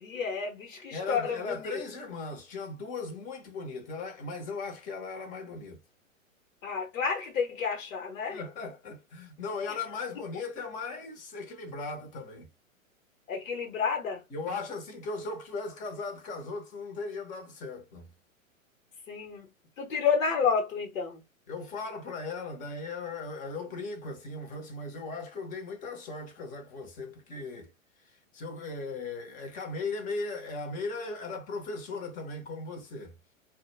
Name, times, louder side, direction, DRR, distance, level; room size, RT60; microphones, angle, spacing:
voice 1, 0.0-1.8 6.6-8.4 9.7-9.8 13.3-14.2 19.1-19.5 19.8-21.2, left 6 dB, 70° left, 0.9 m, -30 dB
voice 2, 0.9-5.8 8.3-12.5 14.3-18.1 21.5-27.7 28.3-33.2, left 3 dB, 20° left, 0.6 m, -38 dB
2.1 x 2.1 x 3.1 m
figure-of-eight pair, 110°, 40 cm